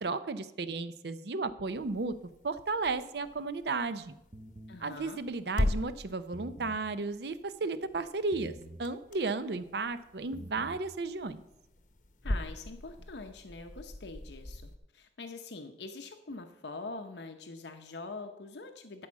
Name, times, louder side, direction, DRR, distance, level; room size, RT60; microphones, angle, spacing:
voice 1, 0.0-2.1 2.4-4.2 4.8-11.4, right 3 dB, 65° right, 13 dB, 0.6 m, -34 dB
sound 1, 1.7-14.8, left 1 dB, 45° left, 0.9 m, -40 dB
sound 2, 4.3-4.8 6.2-6.9 8.3-8.9 10.2-10.9, right 1 dB, 25° right, 0.6 m, -47 dB
voice 2, 4.7-5.2 12.2-19.1, left 3 dB, 75° left, 6 dB, 0.8 m, -44 dB
12.0 x 4.9 x 7.3 m, 0.88 s
head